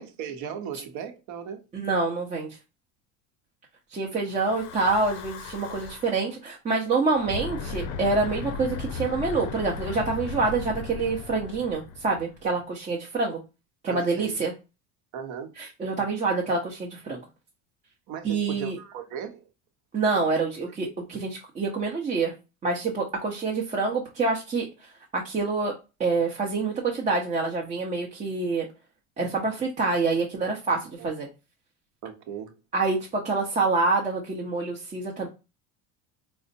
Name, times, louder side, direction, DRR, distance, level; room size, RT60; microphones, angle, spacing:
voice 1, 0.0-1.6 13.9-14.4 15.1-15.5 18.1-19.5 31.0-31.1 32.0-32.6, right 8 dB, 55° right, 0.8 m, -37 dB
voice 2, 1.7-2.5 3.9-13.4 13.8-14.5 15.6-17.2 18.2-18.8 19.9-22.3 22.6-24.7 25.1-25.7 26.0-28.7 29.2-31.3 32.7-35.3, right 3 dB, 20° right, 0.7 m, -26 dB
Breathing / Wind, 4.3-6.3 7.1-12.5, left 5 dB, 60° left, 0.6 m, -36 dB
4.9 x 2.1 x 2.7 m
supercardioid pair, 130°, 36 cm